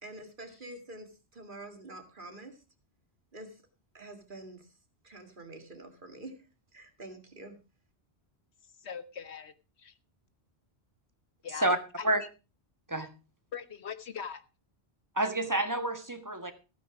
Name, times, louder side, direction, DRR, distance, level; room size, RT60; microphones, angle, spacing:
voice 1, 0.0-2.6 3.3-3.6 3.9-4.7 5.0-6.5 6.7-7.6, right 1 dB, 50° right, 6 dB, 2.4 m, -47 dB
voice 2, 8.8-9.5 9.8-9.9 11.4-12.1 13.5-14.4, left 7 dB, 80° left, 12 dB, 1.4 m, -41 dB
voice 3, 15.1-16.5, right 1 dB, 15° right, 8 dB, 1.5 m, -28 dB
15.0 x 9.4 x 5.0 m, 0.32 s
omnidirectional pair, 1.1 m